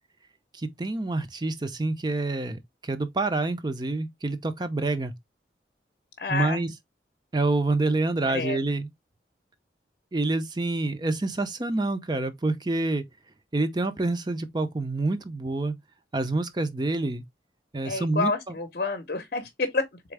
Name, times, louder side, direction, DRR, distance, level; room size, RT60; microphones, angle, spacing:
voice 1, 0.5-5.1 6.3-6.7 7.3-8.9 10.1-13.0 13.5-15.7 16.1-17.2 17.7-18.3, right 2 dB, 25° right, 0.5 m, -27 dB
voice 2, 6.2-6.6 8.2-8.6 17.8-20.0, left 3 dB, 50° left, 0.7 m, -29 dB
4.3 x 3.5 x 3.2 m
head